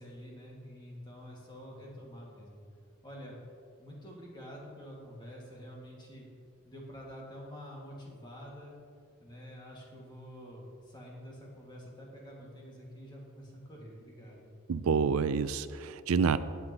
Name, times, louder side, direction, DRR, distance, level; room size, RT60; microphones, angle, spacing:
voice 1, 0.0-2.6 3.0-3.4 3.8-6.3 6.6-8.7 9.2-14.5, equal, 20° left, -3 dB, 1.9 m, -48 dB
voice 2, 14.7-16.4, right 5 dB, 70° right, 14 dB, 0.4 m, -28 dB
16.0 x 7.7 x 2.9 m, 2.2 s
head